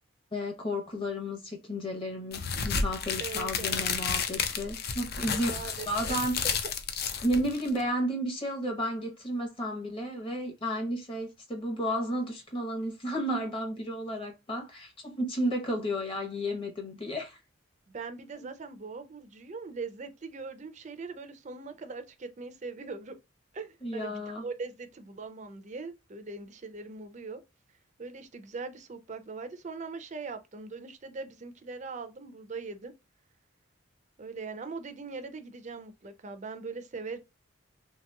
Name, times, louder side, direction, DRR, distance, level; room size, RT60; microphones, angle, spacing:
voice 1, 0.3-5.5 5.9-6.4 7.2-17.4 18.4-18.5 23.8-24.4, equal, 25° left, 0.9 m, -32 dB
sound 1, 2.3-7.8, left 6 dB, 50° left, 0.5 m, -32 dB
voice 2, 3.2-3.8 5.3-6.2 17.9-23.1 23.5-27.4 28.0-32.9 34.2-37.2, right 4 dB, 35° right, 0.5 m, -41 dB
3.2 x 2.9 x 2.2 m
head